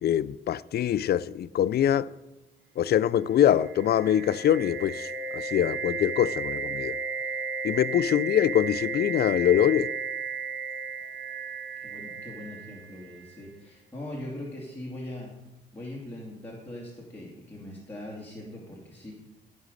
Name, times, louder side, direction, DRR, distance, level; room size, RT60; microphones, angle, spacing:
voice 1, 0.0-2.1 2.8-5.1 5.3-6.9 7.6-9.9, left 10 dB, 55° left, 0.4 m, -24 dB
sound 1, 3.4-13.3, right 5 dB, 75° right, 1.8 m, -34 dB
voice 2, 11.4-15.3 15.7-19.1, left 1 dB, 10° left, 2.5 m, -41 dB
14.5 x 5.3 x 6.4 m
cardioid pair, 90°, 20 cm